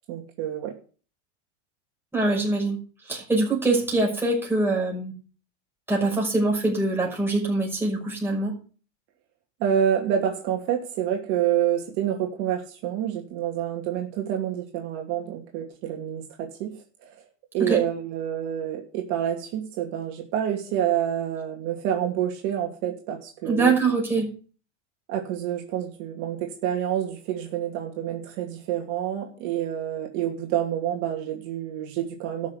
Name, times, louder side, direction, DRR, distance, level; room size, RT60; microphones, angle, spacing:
voice 1, 0.1-0.7 9.6-16.8 17.5-23.7 25.1-32.5, right 10 dB, 50° right, 1 dB, 2.7 m, -28 dB
voice 2, 2.1-2.8 3.1-5.1 5.9-8.5 17.6-17.8 23.4-24.3, right 3 dB, 5° right, -2 dB, 5.8 m, -23 dB
13.0 x 6.4 x 8.1 m, 0.39 s
supercardioid pair, 135°, 36 cm